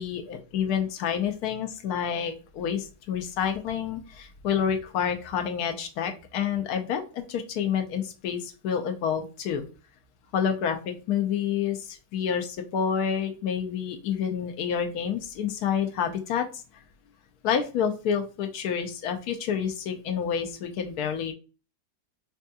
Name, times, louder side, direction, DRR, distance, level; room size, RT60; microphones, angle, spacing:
voice 1, 0.0-9.6 10.3-16.6 17.4-21.3, left 8 dB, 80° left, 5 dB, 1.1 m, -28 dB
4.4 x 2.7 x 2.2 m, 0.34 s
omnidirectional pair, 1.6 m